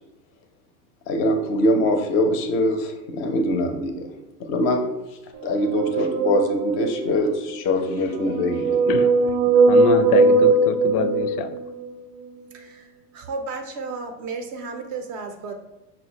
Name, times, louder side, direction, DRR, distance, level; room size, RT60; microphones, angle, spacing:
voice 1, 1.1-4.1 4.4-4.8 5.4-8.9, left 1 dB, 30° left, 5 dB, 0.4 m, -23 dB
sound 1, 5.5-7.1 8.0-11.9, right 3 dB, 85° right, 0.6 m, -19 dB
voice 2, 8.9-11.5, left 6 dB, 75° left, 10 dB, 0.5 m, -25 dB
voice 3, 12.5-15.5, right 4 dB, 35° right, 5 dB, 0.4 m, -33 dB
5.4 x 2.1 x 2.8 m, 1.0 s
hypercardioid pair, 115°, 45 cm